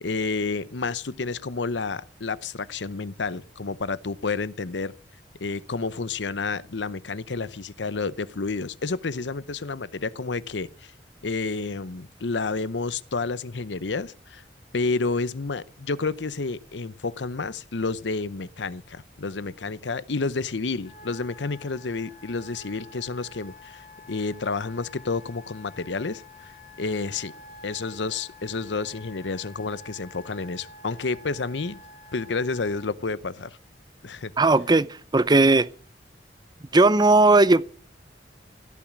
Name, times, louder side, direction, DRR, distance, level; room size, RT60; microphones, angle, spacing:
voice 1, 0.0-4.9 5.4-10.9 11.2-14.4 14.7-26.5 26.8-27.3 27.6-31.8 32.1-33.6 34.0-34.3, left 4 dB, 80° left, 0.8 m, -30 dB
Wind instrument woodwind instrument, 20.8-32.9, left 2 dB, 45° left, 3.7 m, -48 dB
voice 2, 34.4-34.9 35.1-35.7 36.7-37.6, right 2 dB, 25° right, 0.6 m, -17 dB
17.0 x 7.3 x 8.6 m
head